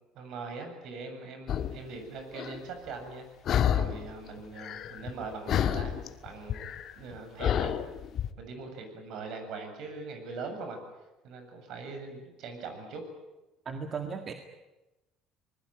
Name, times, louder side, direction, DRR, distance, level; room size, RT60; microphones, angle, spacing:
voice 1, 0.1-3.3 3.7-6.0 6.2-6.6 7.0-7.7 8.4-10.8 11.2-13.0, right 4 dB, 65° right, 6 dB, 7.3 m, -41 dB
sound 1, 1.5-1.8 2.3-2.6 3.5-4.1 4.4-5.2 5.5-8.3, left 9 dB, 50° left, 1.7 m, -29 dB
voice 2, 13.7-14.3, right 5 dB, 40° right, 6 dB, 2.0 m, -36 dB
25.0 x 20.5 x 9.1 m, 1.0 s
cardioid pair, 115°, 0 cm